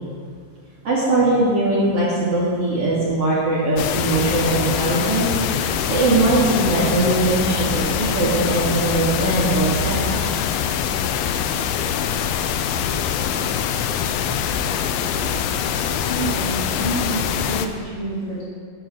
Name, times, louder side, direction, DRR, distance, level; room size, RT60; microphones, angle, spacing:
voice 1, 0.8-5.3 5.9-10.2 14.9-15.5, right 2 dB, 45° right, -8 dB, 3.3 m, -20 dB
sound 1, 3.8-17.7, left 8 dB, 90° left, 2.5 m, -23 dB
voice 2, 16.0-18.4, right 1 dB, 35° left, -9 dB, 4.1 m, -28 dB
11.5 x 7.6 x 6.3 m, 2.1 s
omnidirectional pair, 4.2 m